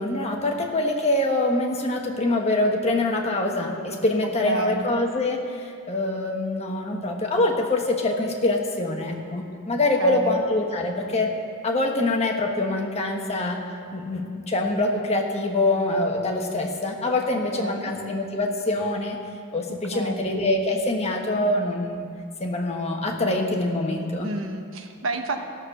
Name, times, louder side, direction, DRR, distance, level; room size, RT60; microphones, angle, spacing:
voice 1, 0.0-11.3 11.6-13.6 13.9-19.2 19.5-22.1 22.4-24.3, left 2 dB, 30° left, 1 dB, 1.2 m, -24 dB
voice 2, 4.4-4.9 10.0-10.4 17.5-17.9 19.9-20.3 24.2-25.4, right 2 dB, 65° right, 5 dB, 1.0 m, -30 dB
15.0 x 6.5 x 6.5 m, 2.3 s
head